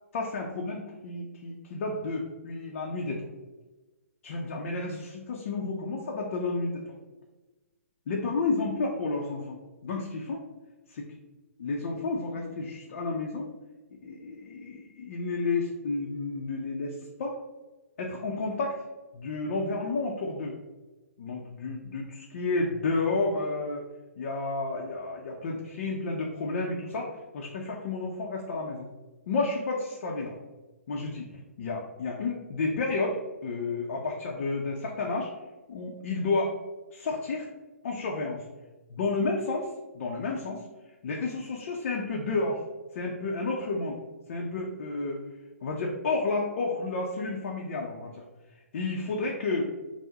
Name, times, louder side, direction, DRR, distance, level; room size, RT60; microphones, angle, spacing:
voice 1, 0.1-3.3 4.2-6.8 8.1-10.4 10.9-11.1 11.6-13.5 13.9-17.4 18.0-18.8 19.1-20.6 21.2-23.8 24.2-28.9 29.3-30.3 30.9-31.3 31.6-35.3 35.7-36.6 36.9-37.5 37.8-38.4 38.9-40.6 41.0-42.6 42.9-44.0 44.3-45.2 45.6-48.2 48.7-49.7, left 3 dB, 55° left, -1 dB, 0.5 m, -31 dB
3.5 x 2.0 x 2.8 m, 1.2 s
hypercardioid pair, 130°, 8 cm